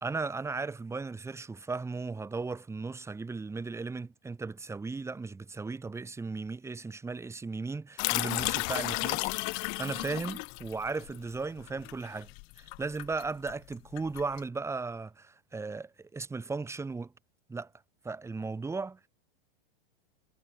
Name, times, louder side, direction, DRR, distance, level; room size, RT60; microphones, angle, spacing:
voice 1, 0.0-12.3 12.6-17.1 17.5-17.7 18.0-19.0, right 4 dB, 10° right, 1.8 m, -36 dB
sound 1, 8.0-14.4, left 39 dB, 40° left, 1.2 m, -34 dB
hypercardioid pair, 130°, 31 cm